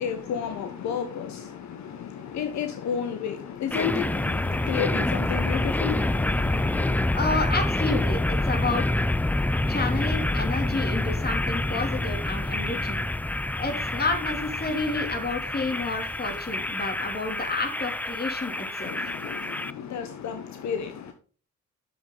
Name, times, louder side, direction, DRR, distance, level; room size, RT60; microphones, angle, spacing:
voice 1, 0.0-7.1 18.8-21.1, left 7 dB, 65° left, 1.1 m, -32 dB
sound 1, 3.7-19.7, left 1 dB, 5° left, 0.3 m, -27 dB
voice 2, 7.1-8.8 9.7-13.0 13.6-19.1, left 3 dB, 30° left, 2.8 m, -30 dB
9.4 x 7.2 x 3.8 m
cardioid pair, 90°, 30 cm